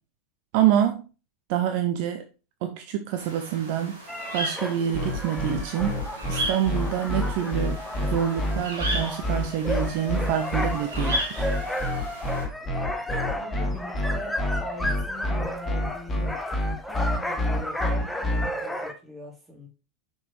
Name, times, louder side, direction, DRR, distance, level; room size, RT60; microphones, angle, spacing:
voice 1, 0.5-1.0 1.5-2.2 2.6-4.0 4.3-6.0 6.3-11.5, right 10 dB, 50° right, 7 dB, 0.6 m, -26 dB
sound 1, 3.2-12.4, right 1 dB, 65° right, 2.5 m, -36 dB
sound 2, 4.1-18.9, left 1 dB, 5° left, 0.9 m, -34 dB
sound 3, 4.9-18.5, left 1 dB, 25° left, 1.9 m, -27 dB
voice 2, 13.3-14.3 14.6-16.3 16.9-19.7, equal, 15° right, 0 dB, 2.7 m, -41 dB
6.0 x 5.2 x 3.2 m, 0.32 s
figure-of-eight pair, 85°, 0 cm